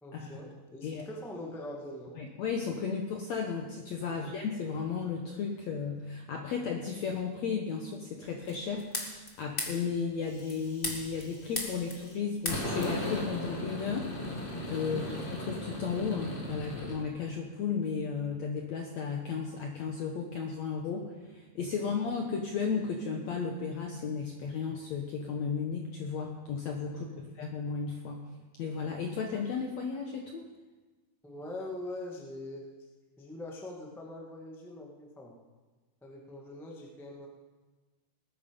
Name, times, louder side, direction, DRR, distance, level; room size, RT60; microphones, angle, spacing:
voice 1, 0.0-2.1 4.1-4.3 14.9-15.1 21.7-21.8 26.9-27.2 31.2-32.7 33.2-35.4 36.0-37.3, left 1 dB, 5° left, -2 dB, 0.3 m, -43 dB
voice 2, 2.1-8.8 9.4-14.1 14.7-27.1 27.3-28.3 28.6-30.5, left 5 dB, 75° left, 2 dB, 1.6 m, -34 dB
sound 1, 8.5-9.3 9.6-9.8 10.3-12.2 12.4-17.0, left 1 dB, 45° left, 0.6 m, -36 dB
20.0 x 9.6 x 5.3 m, 1.3 s
omnidirectional pair, 4.5 m